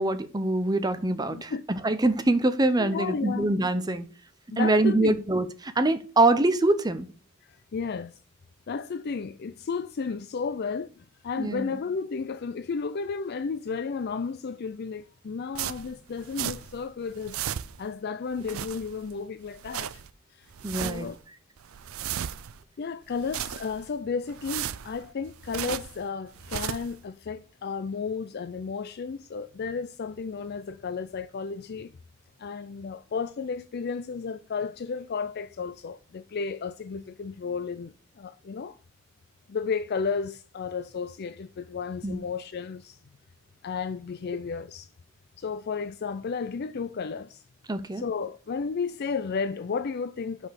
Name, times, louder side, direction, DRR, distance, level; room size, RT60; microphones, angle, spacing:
voice 1, 0.0-4.1 4.6-7.1 11.4-11.7 20.6-21.1 42.0-42.2 47.7-48.0, right 2 dB, 20° right, 0.6 m, -24 dB
voice 2, 1.3-1.6 2.8-3.5 4.5-5.2 7.5-8.2 8.7-17.4 17.8-20.0 20.3-20.5 20.7-21.2 22.8-31.9 32.4-38.8 39.5-43.0 43.6-44.9 45.4-47.4 47.9-50.5, left 5 dB, 50° left, 0.4 m, -33 dB
sound 1, 15.5-16.8 17.1-17.9 18.3-19.1 19.5-20.1 20.5-21.2 21.6-22.6 23.1-23.9 24.3-26.0 26.3-27.0, right 10 dB, 90° right, 0.5 m, -35 dB
6.1 x 5.4 x 6.4 m
head